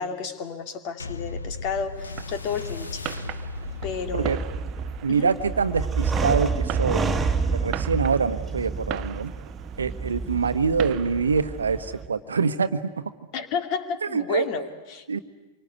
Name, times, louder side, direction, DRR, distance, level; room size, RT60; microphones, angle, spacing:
voice 1, 0.0-3.0 3.8-4.6 5.1-5.3 13.3-15.2, left 6 dB, 45° left, 8 dB, 2.5 m, -31 dB
sound 1, 1.0-9.8 10.5-10.6, left 3 dB, 85° left, 0.9 m, -38 dB
Fireworks, 2.0-12.0, right 14 dB, 40° right, 0.9 m, -40 dB
sound 2, 3.6-12.1, right 4 dB, 15° right, 2.1 m, -29 dB
voice 2, 5.0-7.1 7.5-9.3 9.8-13.1 14.1-14.5 15.1-15.2, right 5 dB, 80° right, 12 dB, 1.1 m, -25 dB
26.5 x 23.5 x 9.5 m, 1.2 s
figure-of-eight pair, 95°, 0 cm